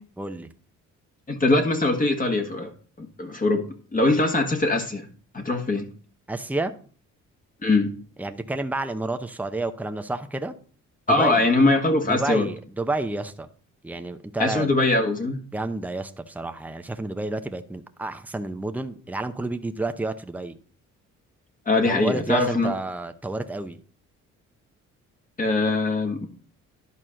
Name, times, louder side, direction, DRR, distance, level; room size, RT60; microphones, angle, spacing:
voice 1, 0.2-0.5 6.3-6.7 8.2-10.5 11.1-11.5 12.0-13.5 13.8-14.7 15.5-20.6 21.9-23.8, right 2 dB, 5° right, 8 dB, 0.8 m, -30 dB
voice 2, 1.3-2.7 3.0-3.7 3.9-5.1 5.3-5.8 7.6-7.9 11.1-12.5 14.4-15.4 21.6-22.7 25.4-26.3, left 2 dB, 25° left, 3 dB, 1.5 m, -22 dB
11.0 x 4.3 x 6.4 m, 0.42 s
cardioid pair, 90°, 30 cm